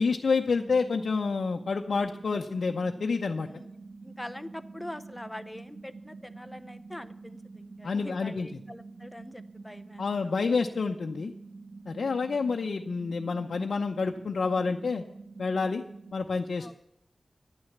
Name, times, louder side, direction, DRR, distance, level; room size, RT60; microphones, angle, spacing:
voice 1, 0.0-3.5 7.8-8.5 10.0-11.3 11.9-15.0 15.4-15.8 16.1-16.8, left 4 dB, 90° left, 2 dB, 0.7 m, -28 dB
sound 1, 0.6-16.1, right 3 dB, 50° right, 1.8 m, -47 dB
voice 2, 4.0-10.4 16.6-16.7, left 1 dB, 10° left, 9 dB, 0.8 m, -44 dB
11.5 x 9.7 x 7.3 m, 0.80 s
wide cardioid pair, 85°, 0 cm